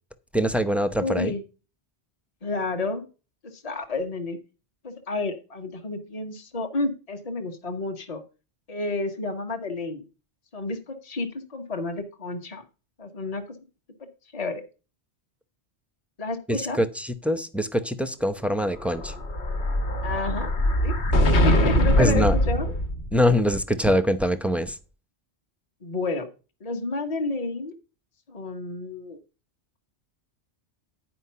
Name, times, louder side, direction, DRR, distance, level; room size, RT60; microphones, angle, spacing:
voice 1, 0.3-1.3 16.5-19.1 22.0-22.4 23.1-24.8, equal, ahead, 0.5 m, -23 dB
voice 2, 1.0-1.4 2.4-3.1 3.4-4.4 4.8-8.2 8.7-10.0 10.5-12.6 13.0-13.6 14.0-14.1 14.3-14.6 16.2-16.8 20.0-20.5 20.8-20.9 21.2-22.7 25.8-26.3 26.6-27.7 28.3-29.2, left 3 dB, 35° left, 1.2 m, -30 dB
Explosion, 18.7-23.3, equal, 70° left, 1.5 m, -22 dB
10.0 x 5.1 x 5.6 m
omnidirectional pair, 1.2 m